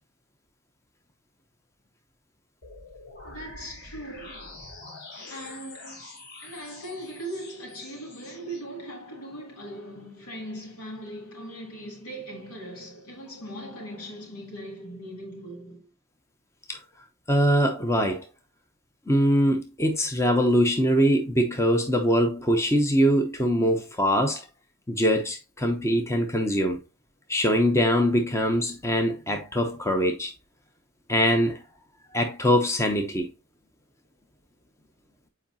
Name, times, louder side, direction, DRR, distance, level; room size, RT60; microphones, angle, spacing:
sound 1, 2.6-8.6, left 2 dB, 50° left, 2.8 m, -45 dB
voice 1, 3.2-4.7 5.3-15.9, right 1 dB, 75° left, 3.5 m, -40 dB
voice 2, 17.3-18.3 19.1-24.4 24.9-26.8 27.3-30.3 31.1-31.6 32.1-33.3, equal, 15° left, 0.8 m, -23 dB
7.9 x 4.8 x 2.8 m
head